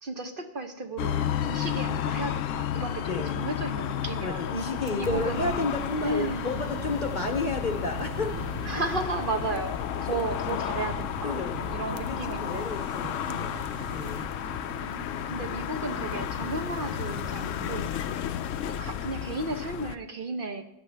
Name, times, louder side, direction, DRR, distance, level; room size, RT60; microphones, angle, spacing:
voice 1, 0.0-4.6 5.0-5.5 6.0-6.5 8.6-12.6 13.3-13.5 14.4-18.1 18.7-20.6, right 3 dB, 50° right, 5 dB, 1.0 m, -34 dB
sound 1, 1.0-19.9, left 10 dB, 80° left, 0.9 m, -32 dB
voice 2, 3.1-3.4 4.2-8.4 11.2-14.3, left 3 dB, 45° left, 6 dB, 0.8 m, -32 dB
sound 2, 4.8-18.8, right 8 dB, 80° right, 1.0 m, -42 dB
16.0 x 11.0 x 3.4 m, 0.86 s
omnidirectional pair, 1.3 m